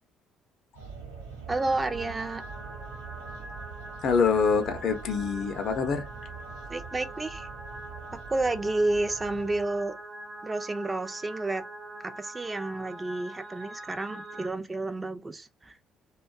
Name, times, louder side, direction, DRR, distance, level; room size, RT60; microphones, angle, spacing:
sound 1, 0.7-10.0, right 5 dB, 90° right, 0.8 m, -44 dB
voice 1, 1.5-2.4 6.7-7.5 8.3-9.9 10.4-11.7 12.0-15.8, right 2 dB, 25° right, 0.4 m, -30 dB
sound 2, 1.5-14.5, right 2 dB, 55° right, 0.9 m, -43 dB
voice 2, 4.0-6.1, left 5 dB, 55° left, 0.6 m, -25 dB
2.4 x 2.2 x 2.3 m
hypercardioid pair, 50°, 0 cm